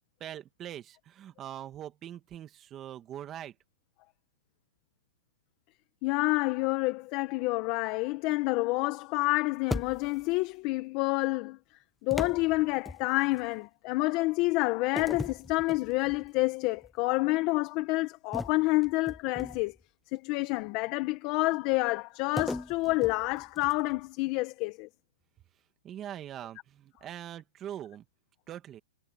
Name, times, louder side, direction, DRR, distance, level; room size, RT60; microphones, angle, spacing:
voice 1, 0.2-3.6 25.8-28.1 28.5-28.8, right 11 dB, 20° right, 2.0 m, -42 dB
voice 2, 6.0-11.6 12.0-19.7 20.1-24.9, left 22 dB, 35° left, 1.2 m, -28 dB
sound 1, 9.7-10.4 12.1-13.5 15.0-16.3 16.8-17.0 18.3-19.8 22.4-24.0, left 2 dB, 5° left, 1.0 m, -38 dB
hypercardioid pair, 150°, 0 cm